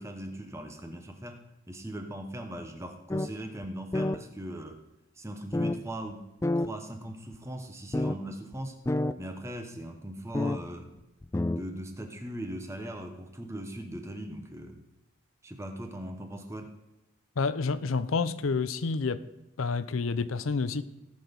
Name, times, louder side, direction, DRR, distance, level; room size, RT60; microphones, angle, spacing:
voice 1, 0.0-1.4 1.7-4.8 5.2-6.3 6.5-8.8 9.2-10.9 11.5-14.8 15.4-16.7, right 1 dB, 15° right, 1.0 m, -39 dB
sound 1, 3.1-3.3 3.6-3.7 3.9-4.2 5.5-5.7 6.4-6.7 7.3-7.4 7.9-8.2 8.5-8.6 8.8-9.1 10.3-10.6 11.2-11.6, left 2 dB, 15° left, 0.3 m, -28 dB
voice 2, 17.4-19.2 19.6-20.8, left 4 dB, 85° left, 0.6 m, -29 dB
18.0 x 6.1 x 5.3 m
head